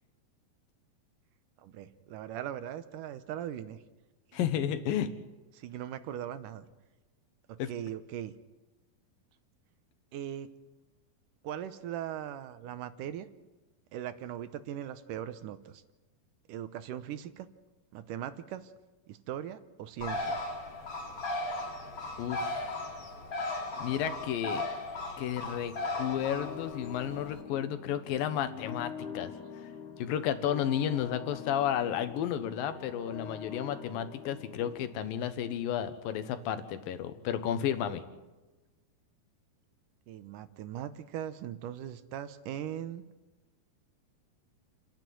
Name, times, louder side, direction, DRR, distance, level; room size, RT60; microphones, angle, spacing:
voice 1, 1.6-3.8 4.3-4.5 5.5-6.7 7.5-8.3 10.1-10.5 11.4-13.3 13.9-15.8 16.5-17.5 17.9-18.7 19.1-20.5 40.1-43.0, right 10 dB, 75° right, 11 dB, 2.3 m, -39 dB
voice 2, 4.3-5.1 7.6-7.7 22.2-22.7 23.8-24.6 25.2-25.7 26.0-29.3 30.0-38.0, left 9 dB, 75° left, 10 dB, 2.9 m, -32 dB
Bird, 20.0-27.4, left 2 dB, 35° left, 1.5 m, -37 dB
sound 1, 26.0-34.9, left 7 dB, 55° left, 3.7 m, -45 dB
30.0 x 10.5 x 9.3 m, 1.1 s
omnidirectional pair, 4.3 m